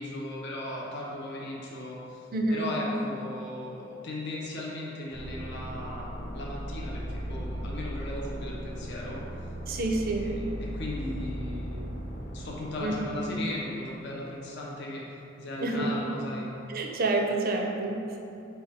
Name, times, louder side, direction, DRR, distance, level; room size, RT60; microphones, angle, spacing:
voice 1, 0.0-9.2 10.0-12.0 12.3-15.1 15.4-16.5, left 1 dB, 55° left, -4 dB, 0.5 m, -37 dB
voice 2, 2.3-2.7 9.7-10.4 12.8-13.1 15.6-15.9 16.7-18.2, right 2 dB, 45° right, 1 dB, 0.4 m, -28 dB
sound 1, 5.1-13.6, equal, 15° left, 0.7 m, -37 dB
4.3 x 2.2 x 4.0 m, 2.7 s
head